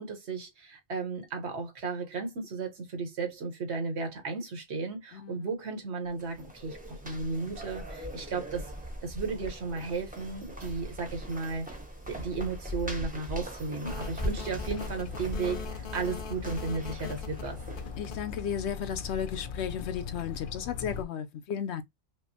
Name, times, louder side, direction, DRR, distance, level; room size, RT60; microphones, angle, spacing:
voice 1, 0.0-8.7 9.0-11.7 12.1-17.6, right 4 dB, 80° right, 1.4 m, -34 dB
sound 1, 6.1-18.2, equal, 10° right, 0.8 m, -40 dB
sound 2, 13.8-21.0, left 6 dB, 60° left, 0.7 m, -39 dB
voice 2, 18.0-21.8, left 8 dB, 80° left, 0.9 m, -34 dB
5.2 x 2.1 x 2.8 m
omnidirectional pair, 1.1 m